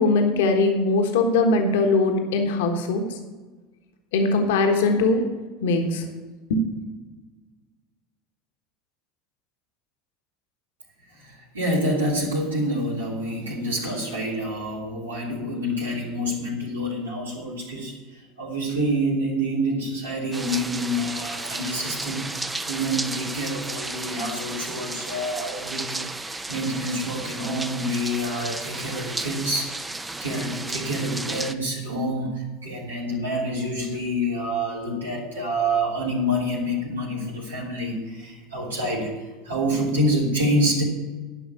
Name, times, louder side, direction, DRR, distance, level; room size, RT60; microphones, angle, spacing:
voice 1, 0.0-3.2 4.1-5.2 5.6-6.0 6.5-6.7, left 3 dB, 70° left, 4 dB, 1.3 m, -21 dB
voice 2, 11.1-39.1 39.4-40.8, equal, 90° right, -6 dB, 3.0 m, -27 dB
sound 1, 20.3-31.5, right 2 dB, 15° right, 0.7 m, -33 dB
11.0 x 5.7 x 8.7 m, 1.3 s
hypercardioid pair, 80°, 0 cm